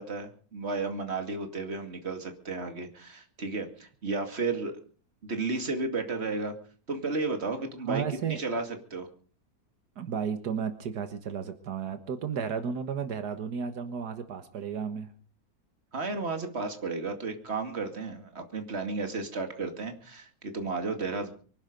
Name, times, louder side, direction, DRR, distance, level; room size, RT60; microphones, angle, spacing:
voice 1, 0.0-4.7 5.2-6.5 6.9-8.0 8.3-8.6 8.9-9.1 15.9-21.3, right 3 dB, 40° right, 5 dB, 2.6 m, -33 dB
voice 2, 7.8-8.4 10.0-15.1, right 6 dB, 85° right, 8 dB, 1.9 m, -33 dB
24.5 x 11.5 x 5.2 m, 0.42 s
omnidirectional pair, 1.7 m